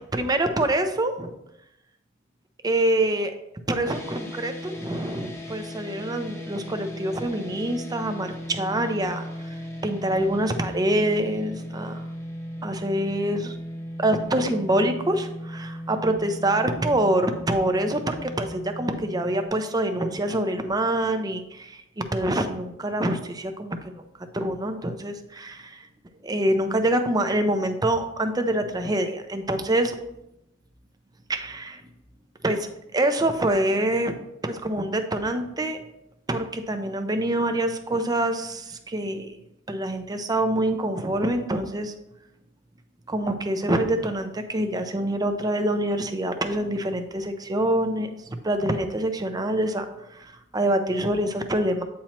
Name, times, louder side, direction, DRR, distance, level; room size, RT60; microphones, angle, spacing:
voice 1, 0.1-1.3 2.6-3.3 3.7-9.6 9.8-12.1 12.6-13.6 14.0-25.9 26.2-29.9 31.3-31.8 32.4-34.2 34.4-35.8 36.3-39.4 39.7-41.9 43.1-51.8, right 1 dB, 20° right, 7 dB, 0.5 m, -26 dB
sound 1, 3.9-19.5, equal, 15° left, 0.8 m, -37 dB
8.4 x 3.0 x 4.3 m, 0.85 s
head